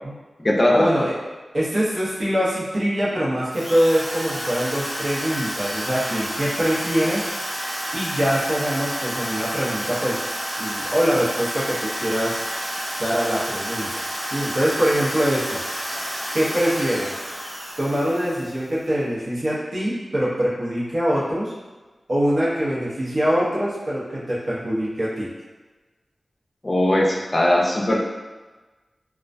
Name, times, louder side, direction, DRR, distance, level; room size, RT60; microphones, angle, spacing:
voice 1, 0.7-1.1 1.5-7.3 7.9-10.2 10.6-12.4 13.0-15.6 16.3-17.1 17.8-21.5 22.1-25.3, equal, 65° right, -8 dB, 0.8 m, -23 dB
Drill, 3.5-18.7, equal, 30° right, 0.5 m, -30 dB
voice 2, 26.6-28.0, left 1 dB, 35° left, -2 dB, 0.5 m, -19 dB
2.3 x 2.1 x 2.5 m, 1.3 s
cardioid pair, 50°, 0 cm